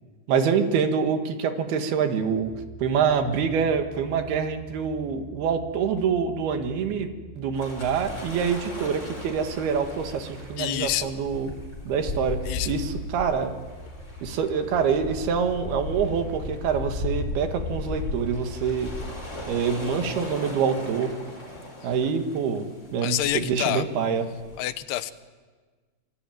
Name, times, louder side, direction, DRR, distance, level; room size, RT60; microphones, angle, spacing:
voice 1, 0.3-2.5 2.8-7.1 7.4-11.5 11.9-13.5 14.2-18.9 19.5-21.2 21.8-24.3, right 6 dB, 75° right, 6 dB, 3.6 m, -26 dB
sound 1, 2.3-20.1, equal, 75° left, 5.0 m, -46 dB
sound 2, 7.5-24.6, left 2 dB, 15° left, 5.2 m, -36 dB
voice 2, 10.6-11.1 12.5-12.7 23.0-23.8 24.6-25.1, left 13 dB, 90° left, 12 dB, 3.1 m, -27 dB
26.5 x 22.0 x 9.3 m, 1.4 s
omnidirectional pair, 4.5 m